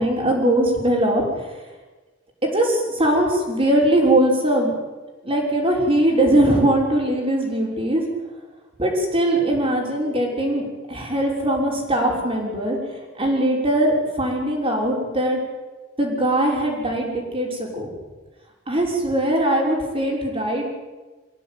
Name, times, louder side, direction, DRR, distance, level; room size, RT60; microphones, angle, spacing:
voice 1, 0.0-1.6 2.4-4.8 5.2-8.0 8.8-12.8 13.2-15.4 16.0-17.9 18.7-20.7, right 1 dB, 30° right, 0 dB, 6.1 m, -21 dB
26.5 x 16.0 x 9.5 m, 1.2 s
head